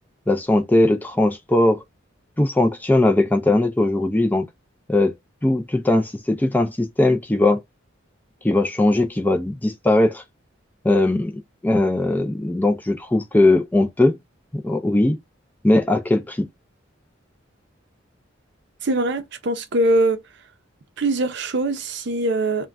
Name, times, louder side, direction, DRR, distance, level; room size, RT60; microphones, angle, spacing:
voice 1, 0.3-1.8 2.4-4.5 4.9-5.1 5.4-7.6 8.4-10.2 10.8-11.3 11.6-14.2 14.5-15.2 15.6-16.5, left 2 dB, 10° left, 0.4 m, -19 dB
voice 2, 18.8-20.2 21.0-22.7, right 2 dB, 60° right, 0.6 m, -22 dB
2.4 x 2.2 x 3.3 m
head